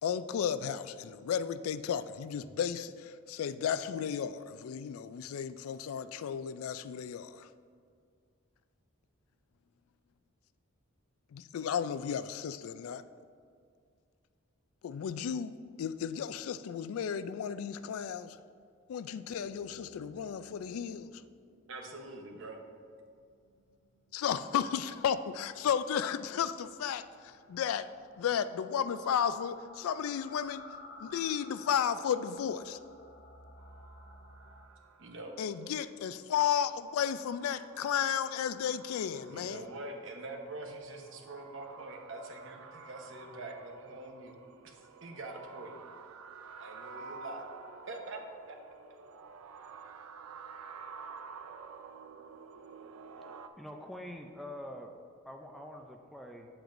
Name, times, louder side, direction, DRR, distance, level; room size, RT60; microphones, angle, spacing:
voice 1, 0.0-7.5 11.3-13.0 14.8-18.4 18.9-21.2 24.1-27.9 28.2-30.6 31.0-32.8 35.4-39.7, left 8 dB, 80° left, 14 dB, 0.3 m, -33 dB
sound 1, 19.3-34.7, left 2 dB, 50° left, 0.7 m, -55 dB
voice 2, 21.7-22.6 35.0-35.3 39.3-44.3 44.6-44.7 45.0-45.7 46.6-47.4 47.9-48.2 48.5-48.6, right 2 dB, 60° right, 2 dB, 0.9 m, -44 dB
sound 2, 33.6-53.5, right 5 dB, 90° right, 0.4 m, -51 dB
voice 3, 53.6-54.9 55.2-56.5, left 1 dB, ahead, 2 dB, 0.3 m, -45 dB
8.8 x 7.8 x 2.6 m, 2.2 s
head